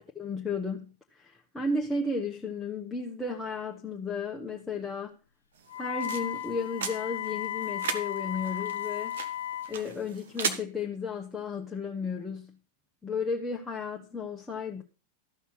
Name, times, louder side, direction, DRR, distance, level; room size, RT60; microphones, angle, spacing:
voice 1, 0.2-5.2 5.8-9.1 9.7-12.6 13.0-14.8, left 4 dB, 10° left, 1.1 m, -34 dB
sound 1, 5.6-10.6, right 7 dB, 60° right, 1.2 m, -38 dB
Wind instrument woodwind instrument, 5.7-9.7, left 11 dB, 70° left, 0.7 m, -35 dB
13.5 x 5.9 x 5.8 m
figure-of-eight pair, 90°, 0 cm